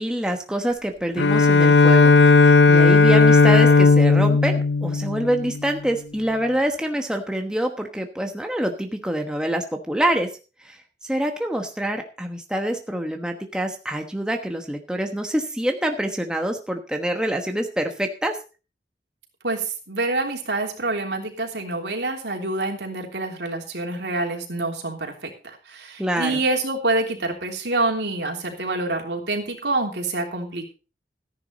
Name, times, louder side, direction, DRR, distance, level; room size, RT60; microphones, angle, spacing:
voice 1, 0.0-2.1 2.4-10.3 10.6-18.4 26.0-26.4, right 1 dB, 5° right, 3 dB, 1.1 m, -26 dB
Bowed string instrument, 1.2-5.8, left 3 dB, 85° left, 0.8 m, -15 dB
voice 2, 19.4-30.7, right 2 dB, 75° right, 2 dB, 3.2 m, -27 dB
14.0 x 10.5 x 4.0 m, 0.33 s
head